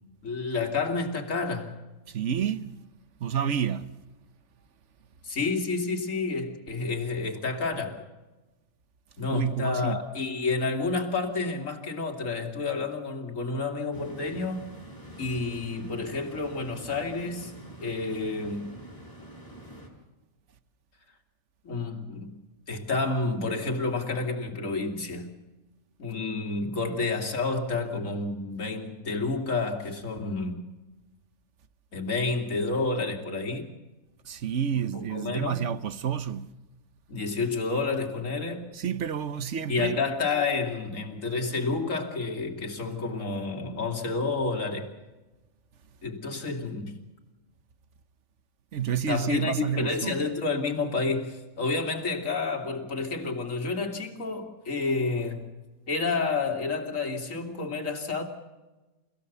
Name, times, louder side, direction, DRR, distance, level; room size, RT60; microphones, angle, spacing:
voice 1, 0.2-1.8 5.2-8.0 9.2-14.6 15.2-17.5 17.8-18.7 21.6-22.3 22.7-25.3 26.0-30.6 31.9-33.7 34.7-35.6 37.1-38.6 39.7-44.9 46.0-46.9 49.1-55.5 55.9-58.2, left 3 dB, 65° left, 3.0 m, -30 dB
voice 2, 2.1-2.7 3.2-3.9 9.2-10.0 34.2-36.5 38.7-40.0 48.7-50.2, right 8 dB, 60° right, 1.2 m, -29 dB
sound 1, 13.9-19.9, equal, 15° left, 5.8 m, -46 dB
30.0 x 16.0 x 6.9 m
omnidirectional pair, 1.5 m